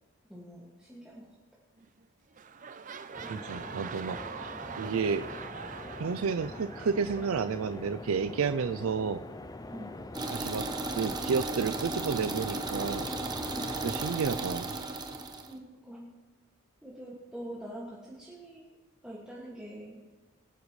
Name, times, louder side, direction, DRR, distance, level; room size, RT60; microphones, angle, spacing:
voice 1, 0.3-1.3 9.7-10.0 13.5-13.7 15.5-16.1 16.8-18.7 19.0-20.0, right 1 dB, 5° right, -7 dB, 2.1 m, -44 dB
sound 1, 1.8-2.0 2.3-8.1 8.8-8.9, right 6 dB, 40° right, 0.5 m, -44 dB
sound 2, 3.1-14.2, left 2 dB, 20° left, 0.4 m, -43 dB
voice 2, 3.3-4.2 4.8-5.3 6.0-9.2 10.3-13.1 13.8-14.7, right 5 dB, 85° right, 10 dB, 0.5 m, -31 dB
sound 3, 10.1-15.5, right 3 dB, 20° right, 1.0 m, -35 dB
24.5 x 10.0 x 3.2 m, 1.2 s
head